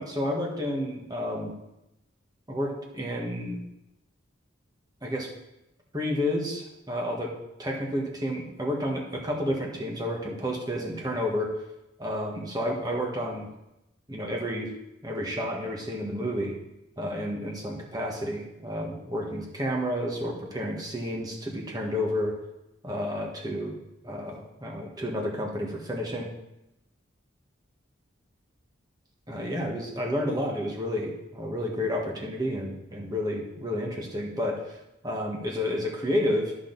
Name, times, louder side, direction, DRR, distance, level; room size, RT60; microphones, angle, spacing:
voice 1, 0.0-1.5 2.5-3.6 5.0-5.3 5.9-7.3 7.6-11.5 12.0-13.5 14.1-14.7 15.0-16.5 17.0-22.3 22.8-23.8 24.0-26.3 29.3-34.8 35.0-36.5, equal, 20° right, -1 dB, 1.5 m, -30 dB
12.5 x 6.1 x 4.0 m, 0.90 s
head